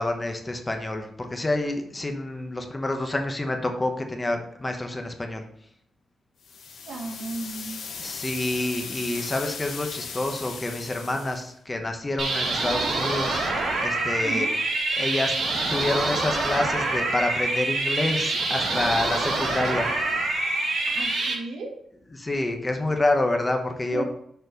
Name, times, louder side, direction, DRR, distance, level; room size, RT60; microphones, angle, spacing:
voice 1, 0.0-5.4 8.0-13.5 13.8-14.5 15.0-15.4 15.7-19.9 22.1-24.0, left 2 dB, 15° left, 4 dB, 1.0 m, -28 dB
sound 1, 6.4-11.5, left 5 dB, 85° left, 1.4 m, -37 dB
voice 2, 6.8-7.8 14.2-14.5 20.9-21.8 23.9-24.0, right 3 dB, 85° right, 2 dB, 1.5 m, -34 dB
sound 2, 12.2-21.3, right 2 dB, 70° right, 2.2 m, -26 dB
6.8 x 4.3 x 5.1 m, 0.70 s
wide cardioid pair, 140°, 0 cm